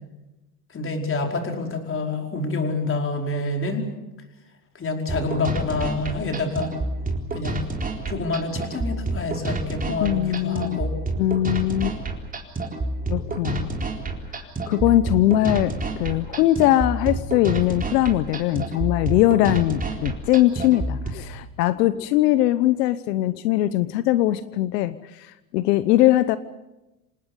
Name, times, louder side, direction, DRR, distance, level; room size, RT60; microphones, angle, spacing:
voice 1, 0.7-3.9 4.7-6.7 7.3-7.6 8.1-10.9, left 3 dB, 25° left, 3 dB, 5.0 m, -27 dB
sound 1, 5.1-21.1, right 2 dB, 15° right, 4.1 m, -29 dB
voice 2, 10.0-10.8 11.2-12.0 13.1-13.8 14.7-26.4, left 14 dB, 80° left, 14 dB, 1.1 m, -21 dB
27.5 x 19.0 x 8.3 m, 1.0 s
supercardioid pair, 105°, 48 cm